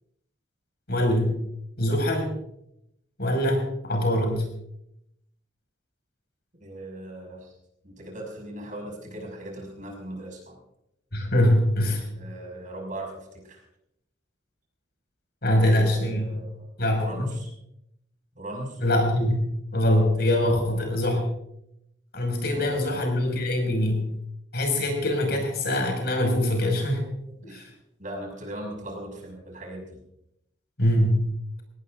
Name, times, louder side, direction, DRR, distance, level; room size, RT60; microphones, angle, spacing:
voice 1, 0.9-1.3 1.8-2.3 3.2-4.5 11.1-12.0 15.4-16.3 16.8-17.3 18.8-21.3 22.1-24.1 24.5-27.0 27.5-27.7 30.8-31.3, left 1 dB, 60° left, 2 dB, 5.9 m, -23 dB
voice 2, 6.6-7.6 7.8-10.6 12.2-13.6 15.5-16.7 17.0-17.5 18.4-18.8 20.7-20.9 22.5-23.0 26.8-27.7 28.0-30.0, right 1 dB, 45° right, 0 dB, 6.2 m, -39 dB
24.5 x 18.5 x 2.6 m, 0.80 s
head